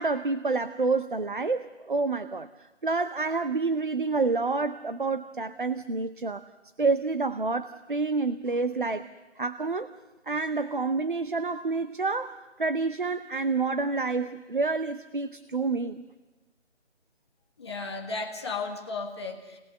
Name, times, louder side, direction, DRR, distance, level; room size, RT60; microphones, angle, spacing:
voice 1, 0.0-2.5 2.8-6.5 6.8-9.1 9.4-9.9 10.3-16.0, right 3 dB, 45° right, 12 dB, 0.7 m, -28 dB
voice 2, 17.6-19.6, left 3 dB, 20° left, 0 dB, 1.8 m, -34 dB
29.0 x 19.5 x 6.7 m, 1.2 s
figure-of-eight pair, 170°, 36 cm